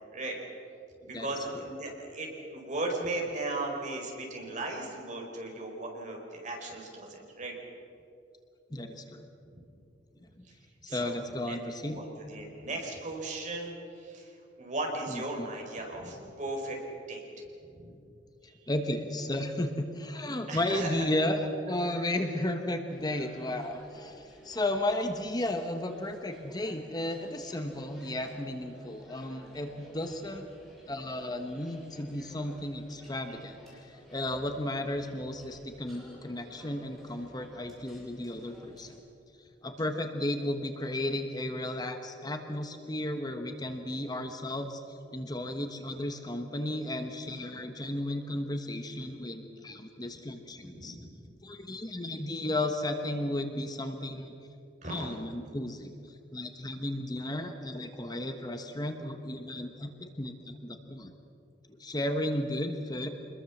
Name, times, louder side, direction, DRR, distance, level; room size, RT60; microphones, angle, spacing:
voice 1, 1.0-7.5 10.9-11.1 11.4-16.8 17.1-17.2 20.5-21.1 21.9-22.2 50.8-51.1 54.8-55.2, right 2 dB, 45° right, 1 dB, 4.7 m, -37 dB
voice 2, 8.7-9.3 10.2-10.3 10.8-12.0 15.1-15.5 18.7-30.5 30.9-38.9 39.6-51.0 51.4-54.3 54.9-61.1 61.7-63.1, left 1 dB, 20° left, 6 dB, 1.2 m, -34 dB
sound 1, 22.9-39.0, equal, ahead, 6.7 m, -54 dB
26.0 x 21.0 x 7.3 m, 2.7 s
head